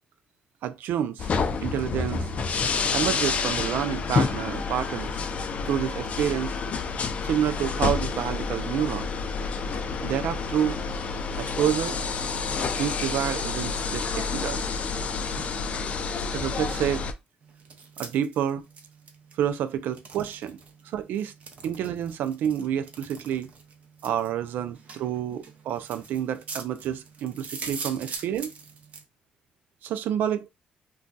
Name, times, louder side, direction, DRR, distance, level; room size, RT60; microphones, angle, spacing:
voice 1, 0.6-1.3 1.6-2.3 2.9-5.2 5.7-6.5 7.2-9.1 10.0-10.8 11.4-12.0 12.7-14.6 16.3-17.0 18.0-18.6 19.4-20.6 20.9-21.3 21.6-23.5 24.0-28.5 29.8-30.5, right 9 dB, 80° right, 0.4 m, -28 dB
sound 1, 1.2-17.1, left 5 dB, 45° left, 0.4 m, -29 dB
sound 2, 17.4-29.0, right 4 dB, 50° right, 0.7 m, -43 dB
2.3 x 2.3 x 3.9 m
cardioid pair, 110°, 3 cm